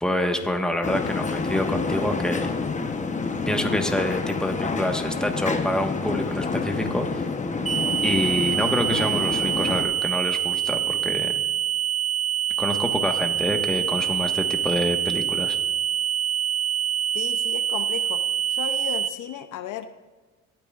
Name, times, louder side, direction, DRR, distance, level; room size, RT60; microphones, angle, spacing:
voice 1, 0.0-2.5 3.5-7.3 8.0-11.3 12.6-15.6, left 1 dB, ahead, 3 dB, 1.4 m, -27 dB
sound 1, 0.8-9.8, left 4 dB, 25° left, 1.0 m, -28 dB
sound 2, 7.7-19.1, right 10 dB, 25° right, 0.9 m, -25 dB
voice 2, 17.1-18.2 18.5-19.9, left 10 dB, 85° left, 10 dB, 0.7 m, -34 dB
20.0 x 9.1 x 2.5 m, 1.3 s
cardioid pair, 90°, 30 cm